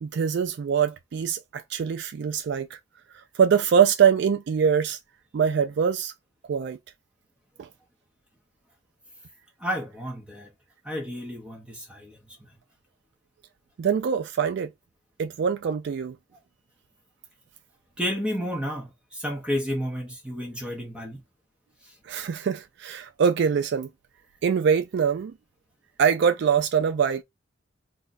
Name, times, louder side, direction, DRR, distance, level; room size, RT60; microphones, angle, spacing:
voice 1, 0.0-2.8 3.3-5.0 5.3-6.1 6.4-6.8 7.6-7.7 13.8-14.7 15.2-16.2 22.1-23.9 24.4-25.3 26.0-27.2, right 7 dB, 60° right, 0.3 m, -23 dB
voice 2, 9.6-10.5 10.8-12.2 18.0-21.2, equal, 5° right, 0.8 m, -31 dB
2.6 x 2.3 x 3.9 m
head